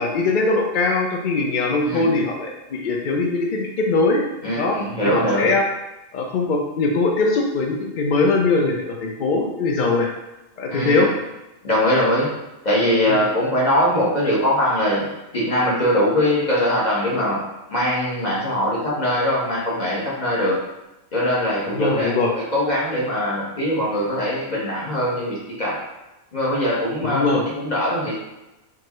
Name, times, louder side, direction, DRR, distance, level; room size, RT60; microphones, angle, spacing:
voice 1, 0.0-4.2 4.6-4.8 5.0-5.6 6.1-10.1 10.6-11.1 13.1-13.2 21.7-22.3 27.1-27.4, left 3 dB, 80° left, 1 dB, 0.4 m, -21 dB
voice 2, 1.8-2.1 4.4-5.5 10.7-11.0 11.6-12.3 12.6-15.1 15.3-17.4 17.7-20.5 21.1-25.8 26.3-27.3 27.5-28.1, equal, 35° left, -6 dB, 1.3 m, -21 dB
4.5 x 2.7 x 3.0 m, 0.95 s
omnidirectional pair, 1.4 m